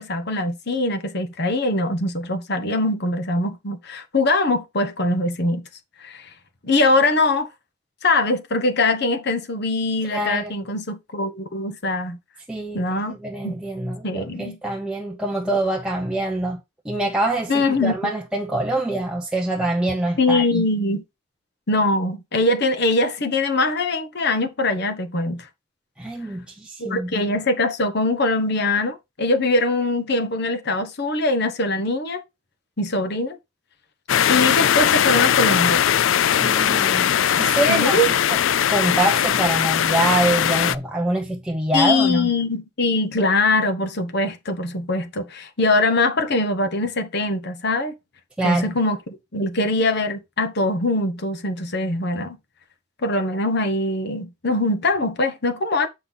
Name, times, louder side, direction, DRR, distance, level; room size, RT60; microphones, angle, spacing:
voice 1, 0.0-5.7 6.0-6.3 6.6-7.5 8.0-12.2 12.7-13.2 13.4-13.6 14.0-14.6 17.5-18.1 20.2-21.0 21.7-25.5 26.8-32.2 32.8-33.4 34.3-35.8 37.5-38.1 41.7-47.9 48.4-52.4 53.0-55.9, left 2 dB, 55° left, 1.2 m, -22 dB
voice 2, 10.0-10.5 12.5-16.6 16.8-20.6 26.0-27.3 36.4-38.4 38.7-42.3 48.4-48.7, right 1 dB, 5° right, 0.7 m, -25 dB
sound 1, 34.1-40.7, left 9 dB, 70° left, 0.4 m, -19 dB
7.4 x 5.4 x 4.0 m
head